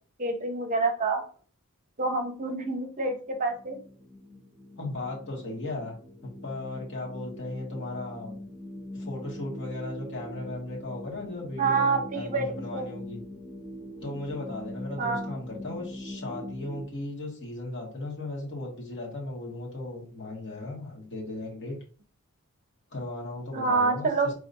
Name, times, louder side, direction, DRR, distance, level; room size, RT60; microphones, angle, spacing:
voice 1, 0.2-1.2 2.0-3.8 11.6-12.9 15.0-15.3 23.5-24.3, right 3 dB, 35° right, 4 dB, 0.8 m, -27 dB
sound 1, 3.1-16.9, left 1 dB, 5° right, 0.5 m, -42 dB
voice 2, 4.8-6.0 6.2-8.4 8.9-13.2 14.0-21.8 22.9-24.3, left 2 dB, 55° left, -2 dB, 1.8 m, -36 dB
5.0 x 3.5 x 2.7 m, 0.41 s
head